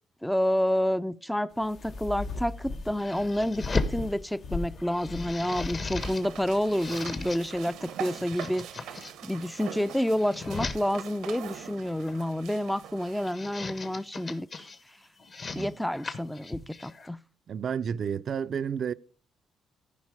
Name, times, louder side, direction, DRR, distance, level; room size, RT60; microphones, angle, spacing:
voice 1, 0.2-14.7 15.5-17.2, equal, 5° left, 0.4 m, -29 dB
sound 1, 1.5-7.9, left 3 dB, 65° left, 1.2 m, -40 dB
sound 2, 1.7-4.0 4.5-6.3 6.6-7.4 8.0-9.1 9.7-10.8 11.9-12.3 13.1-14.8 15.2-17.1, left 3 dB, 45° left, 1.4 m, -36 dB
sound 3, 6.0-13.3, right 9 dB, 90° right, 0.8 m, -43 dB
voice 2, 17.5-18.9, right 7 dB, 55° right, 0.4 m, -31 dB
15.0 x 5.2 x 4.8 m
cardioid pair, 90°, 0 cm